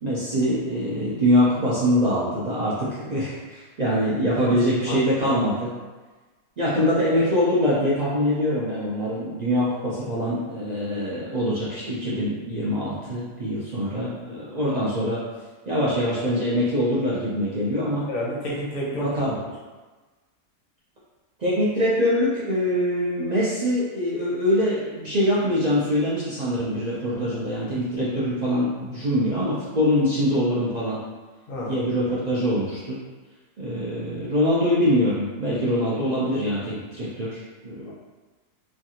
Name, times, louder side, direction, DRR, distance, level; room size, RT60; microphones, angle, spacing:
voice 1, 0.0-5.7 6.6-15.2 15.7-18.1 18.9-19.4 21.4-31.0 31.7-33.0 33.6-37.9, equal, 70° right, -8 dB, 0.4 m, -24 dB
voice 2, 4.4-5.0 5.3-5.4 18.1-19.1 27.1-27.2 31.5-31.8 37.9-38.0, equal, 50° left, -4 dB, 0.8 m, -31 dB
3.3 x 2.3 x 2.7 m, 1.3 s
omnidirectional pair, 1.5 m